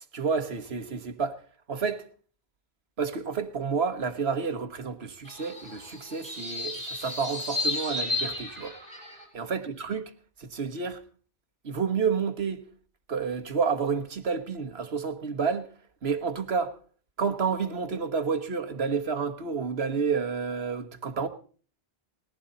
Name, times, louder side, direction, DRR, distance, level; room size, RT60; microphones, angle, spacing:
voice 1, 0.1-1.4 1.7-2.0 3.0-8.8 9.3-10.1 10.4-11.0 11.6-12.6 13.1-15.7 16.0-16.7 17.2-21.3, right 5 dB, 65° right, 1.7 m, -30 dB
sound 1, 5.2-9.2, left 2 dB, 35° left, 8.1 m, -33 dB
20.0 x 15.5 x 4.0 m
omnidirectional pair, 1.1 m